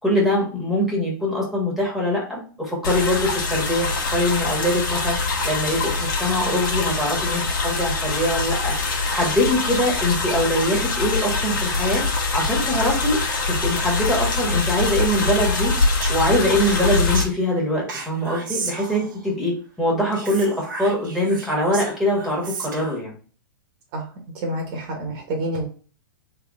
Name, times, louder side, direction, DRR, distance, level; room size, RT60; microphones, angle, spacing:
voice 1, 0.0-5.2 5.4-8.7 9.1-12.0 12.3-13.2 13.5-15.7 16.1-19.5 19.8-23.2, left 1 dB, ahead, -3 dB, 1.6 m, -23 dB
sound 1, 2.8-17.2, left 3 dB, 70° left, 1.4 m, -23 dB
Speech, 15.7-17.3 17.9-19.3 20.1-23.0, right 4 dB, 65° right, 1.2 m, -34 dB
voice 2, 24.3-25.7, right 1 dB, 45° right, 2 dB, 1.3 m, -28 dB
3.6 x 3.3 x 3.7 m, 0.40 s
hypercardioid pair, 115°, 11 cm